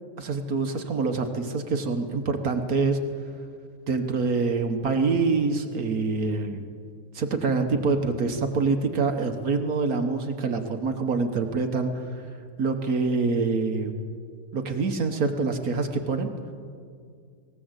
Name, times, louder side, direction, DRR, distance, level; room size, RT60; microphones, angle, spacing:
voice 1, 0.2-3.0 3.9-6.6 7.1-12.2 12.6-13.9 14.5-16.3, right 4 dB, 70° right, 5 dB, 1.6 m, -25 dB
19.5 x 18.0 x 8.1 m, 2.2 s
omnidirectional pair, 1.6 m